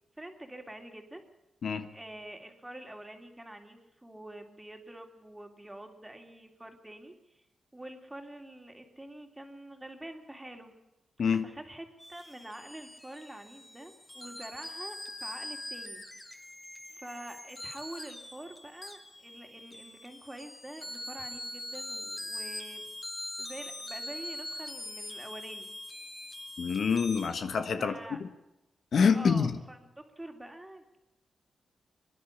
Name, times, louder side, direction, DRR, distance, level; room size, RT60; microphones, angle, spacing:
voice 1, 0.2-1.2 1.9-7.4 7.7-10.7 11.4-16.0 16.9-22.9 23.4-25.7 27.8-28.2 29.1-31.0, right 1 dB, 10° right, 5 dB, 3.1 m, -46 dB
sound 1, 12.0-27.3, left 1 dB, 15° left, 2.7 m, -43 dB
voice 2, 26.6-27.9 28.2-28.3 28.9-29.5, left 6 dB, 65° left, 9 dB, 1.4 m, -26 dB
24.5 x 11.5 x 9.8 m, 0.93 s
cardioid pair, 95°, 0 cm